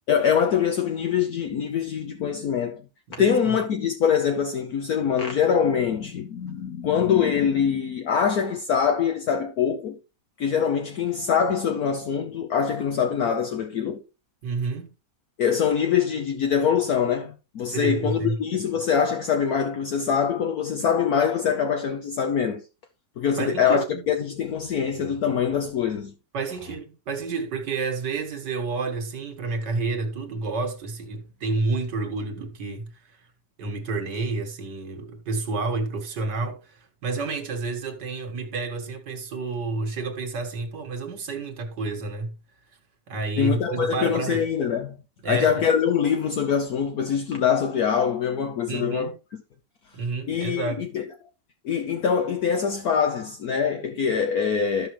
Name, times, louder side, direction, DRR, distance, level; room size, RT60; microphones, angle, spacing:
voice 1, 0.1-2.8 3.1-10.0 10.4-14.0 15.4-22.6 23.2-26.1 43.4-45.0 45.2-49.1 50.3-51.1 51.6-54.9, left 7 dB, 65° left, 1.3 m, -24 dB
voice 2, 3.2-3.6 14.4-14.9 17.7-18.4 23.4-24.0 26.3-33.3 33.6-42.3 43.1-44.4 45.2-45.6 48.7-49.2 49.9-50.8, right 3 dB, 75° right, 2.1 m, -30 dB
14.0 x 5.8 x 3.0 m
omnidirectional pair, 1.9 m